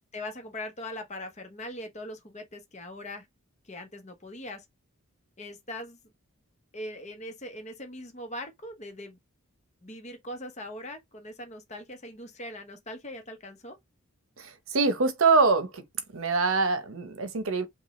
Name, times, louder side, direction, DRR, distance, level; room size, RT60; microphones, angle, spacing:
voice 1, 0.1-3.3 3.6-4.6 5.4-6.0 6.7-9.2 9.8-13.8, left 1 dB, 30° left, 0.9 m, -41 dB
voice 2, 14.4-15.8 16.1-17.6, right 4 dB, 65° right, 0.8 m, -24 dB
5.2 x 2.4 x 3.1 m
head